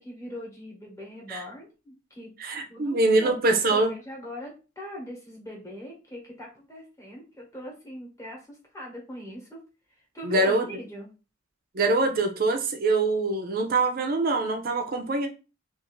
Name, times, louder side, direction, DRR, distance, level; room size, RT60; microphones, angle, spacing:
voice 1, 0.0-2.3 2.7-9.6 9.9-11.1, left 1 dB, 15° left, 1.0 m, -41 dB
voice 2, 2.4-3.9 10.2-10.7 11.7-15.3, right 2 dB, 45° right, 0.4 m, -24 dB
2.5 x 2.4 x 3.0 m
head